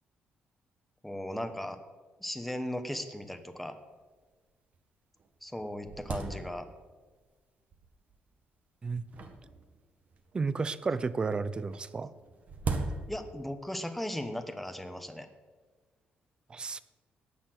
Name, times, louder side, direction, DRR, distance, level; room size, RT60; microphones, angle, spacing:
voice 1, 1.0-1.8 2.2-3.8 5.4-6.7 13.1-15.3, left 1 dB, 5° left, 7 dB, 1.2 m, -37 dB
sound 1, 2.9-3.0 3.2-3.3 4.0-4.1 4.7-4.8 5.2-7.0 7.7-8.2 9.1-10.4 11.7-13.5, right 4 dB, 45° right, 1.6 m, -38 dB
voice 2, 10.3-12.1 16.5-16.8, right 4 dB, 25° right, 16 dB, 0.6 m, -32 dB
17.5 x 6.9 x 7.8 m, 1.4 s
cardioid pair, 130°, 3 cm